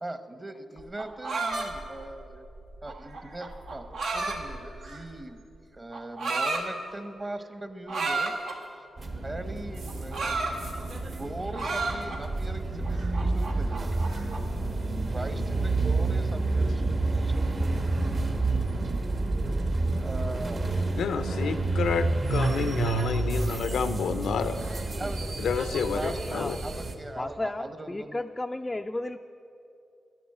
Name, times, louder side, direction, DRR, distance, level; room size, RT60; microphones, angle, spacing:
voice 1, 0.0-2.4 2.8-5.4 5.7-8.4 8.7-8.8 9.2-10.5 11.2-13.8 15.1-18.0 20.0-20.7 25.0-28.2, right 2 dB, 25° right, 9 dB, 1.0 m, -40 dB
sound 1, 0.8-5.2 5.9-6.6 7.9-8.6 9.8-11.2 11.5-12.4 12.8-14.5, right 3 dB, 85° right, 1.6 m, -32 dB
sound 2, 9.0-27.0, right 2 dB, 50° right, 1.4 m, -29 dB
voice 2, 21.0-24.7 25.4-26.6, left 6 dB, 90° left, 11 dB, 0.6 m, -30 dB
voice 3, 27.1-29.2, left 2 dB, 20° left, 5 dB, 0.3 m, -33 dB
11.0 x 11.0 x 7.7 m, 2.7 s
cardioid pair, 85°, 0 cm